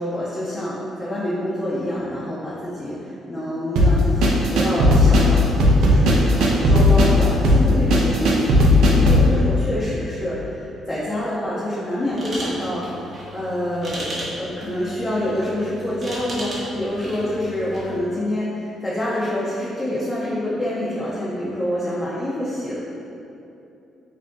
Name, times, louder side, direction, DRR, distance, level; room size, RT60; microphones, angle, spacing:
voice 1, 0.0-5.5 5.8-8.6 8.9-14.1 14.4-22.8, left 1 dB, 20° left, -9 dB, 0.5 m, -26 dB
sound 1, 3.8-9.3, left 1 dB, 75° right, 0.4 m, -15 dB
sound 2, 12.1-18.0, equal, 30° right, 0.6 m, -35 dB
2.7 x 2.5 x 3.4 m, 2.8 s
cardioid pair, 140°, 0 cm